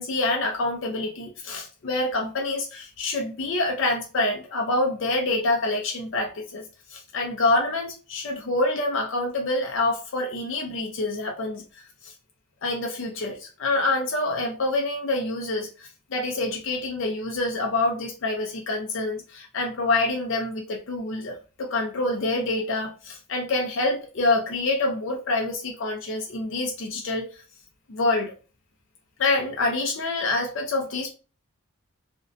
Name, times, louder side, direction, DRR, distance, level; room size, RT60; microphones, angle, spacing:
voice 1, 0.0-12.1 12.6-27.4 27.9-28.3 29.2-31.1, left 2 dB, 60° left, 2 dB, 0.4 m, -26 dB
2.5 x 2.1 x 2.5 m, 0.34 s
head